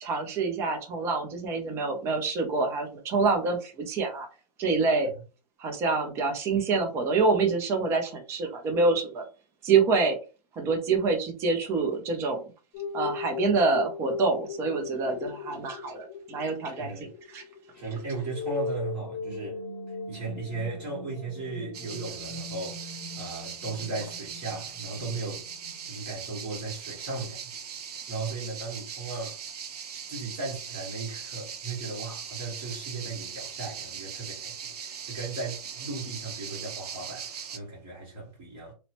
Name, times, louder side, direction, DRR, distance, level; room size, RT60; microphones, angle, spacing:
voice 1, 0.0-4.3 4.6-5.1 5.6-9.2 9.6-10.2 10.6-12.4 12.9-17.1 17.3-17.4, right 4 dB, 15° right, 0.4 m, -26 dB
sound 1, 12.7-25.9, left 5 dB, 30° left, 0.6 m, -39 dB
voice 2, 16.8-17.1 17.7-19.6 19.9-25.5 25.8-27.6 27.8-29.4 30.1-38.7, right 3 dB, 35° right, 1.2 m, -36 dB
sound 2, 21.7-37.6, right 7 dB, 70° right, 0.6 m, -40 dB
2.8 x 2.0 x 2.9 m
hypercardioid pair, 150°, 21 cm